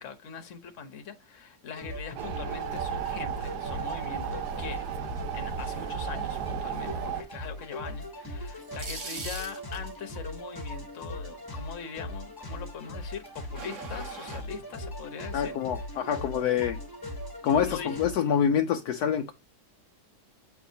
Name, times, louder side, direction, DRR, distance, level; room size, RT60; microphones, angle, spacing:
voice 1, 0.0-4.8 5.3-15.9 17.6-18.0, left 7 dB, 50° left, 1.2 m, -42 dB
sound 1, 1.7-18.1, left 1 dB, 15° left, 1.2 m, -40 dB
sound 2, 2.2-7.2, right 8 dB, 70° right, 1.2 m, -34 dB
sound 3, 8.5-10.0 13.3-14.4, right 4 dB, 50° right, 1.4 m, -39 dB
voice 2, 15.3-16.8 17.4-19.3, left 8 dB, 75° left, 1.1 m, -26 dB
7.9 x 4.7 x 2.8 m
omnidirectional pair, 1.9 m